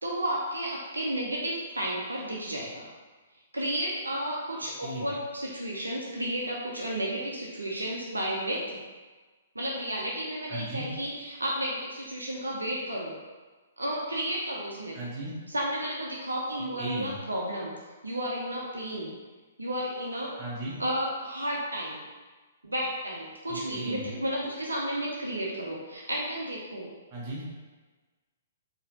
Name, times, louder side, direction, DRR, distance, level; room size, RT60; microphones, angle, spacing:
voice 1, 0.0-2.9 3.5-8.8 9.5-13.1 13.8-15.0 15.5-17.7 18.0-19.2 19.6-20.3 20.8-22.0 22.6-26.9, right 1 dB, 80° right, -3 dB, 0.7 m, -32 dB
voice 2, 10.5-10.9 14.9-15.3 16.8-17.1 20.4-20.8 23.5-24.1 27.1-27.4, right 1 dB, 30° right, -7 dB, 1.4 m, -36 dB
4.8 x 3.0 x 2.9 m, 1.3 s
figure-of-eight pair, 120°, 0 cm